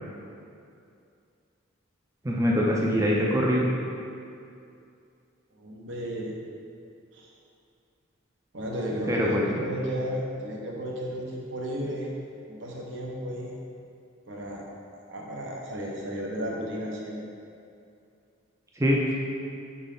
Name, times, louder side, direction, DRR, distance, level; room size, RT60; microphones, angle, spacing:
voice 1, 2.2-3.6 9.1-9.4 18.8-19.1, equal, 15° right, -3 dB, 0.5 m, -23 dB
voice 2, 5.5-6.3 7.1-7.3 8.5-12.1 12.5-13.5 14.3-14.6 15.1-17.2, equal, 65° right, -2 dB, 0.9 m, -33 dB
6.4 x 4.0 x 3.8 m, 2.5 s
head